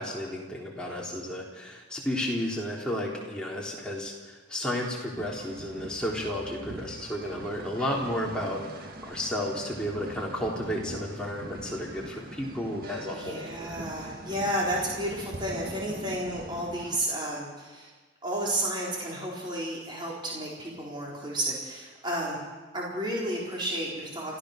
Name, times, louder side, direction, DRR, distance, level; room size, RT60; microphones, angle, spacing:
voice 1, 0.0-13.5, left 1 dB, 5° left, -3 dB, 3.6 m, -32 dB
sound 1, 5.2-17.0, right 1 dB, 45° right, 1.9 m, -42 dB
voice 2, 13.1-17.9 18.2-22.4 22.7-24.4, right 1 dB, 20° right, -4 dB, 4.3 m, -32 dB
29.5 x 14.0 x 6.5 m, 1.3 s
head